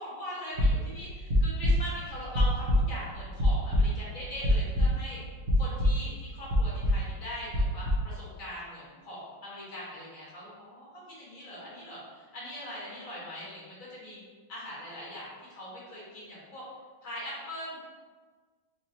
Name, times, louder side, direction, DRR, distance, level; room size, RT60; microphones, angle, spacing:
voice 1, 0.0-5.2 5.6-14.2 14.5-16.6 17.0-17.8, equal, 45° left, -7 dB, 1.6 m, -41 dB
sound 1, 0.5-5.2 5.4-6.2 6.5-7.1 7.5-8.1, equal, 45° right, 0.8 m, -25 dB
4.8 x 2.9 x 2.8 m, 1.5 s
omnidirectional pair, 2.3 m